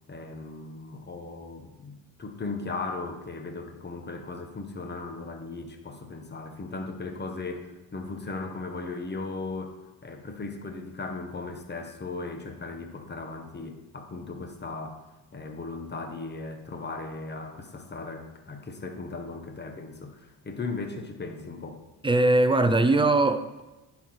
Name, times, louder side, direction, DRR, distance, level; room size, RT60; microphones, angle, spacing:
voice 1, 0.1-15.0 15.3-21.8, left 3 dB, 25° left, 1.1 m, -37 dB
voice 2, 22.0-23.6, right 2 dB, 10° right, 0.4 m, -21 dB
10.0 x 4.8 x 5.8 m
cardioid pair, 145°, 45 cm